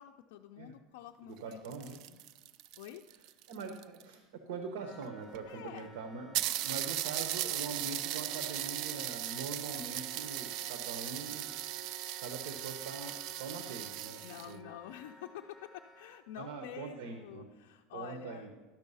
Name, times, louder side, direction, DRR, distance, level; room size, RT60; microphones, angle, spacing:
voice 1, 0.0-2.2 2.8-3.0 5.5-5.9 14.2-18.5, left 11 dB, 80° left, 3 dB, 0.4 m, -48 dB
voice 2, 1.3-2.0 3.5-11.5 12.2-14.2 14.5-14.7 16.4-17.5 17.9-18.5, right 4 dB, 85° right, 6 dB, 0.9 m, -43 dB
sound 1, 1.4-4.1 5.0-5.1 5.3-5.4 5.8-5.9 6.3-14.5, right 13 dB, 50° right, 0.3 m, -38 dB
Wind instrument woodwind instrument, 4.8-16.2, left 2 dB, 5° left, 0.7 m, -56 dB
12.0 x 5.5 x 5.5 m, 1.3 s
supercardioid pair, 155°, 0 cm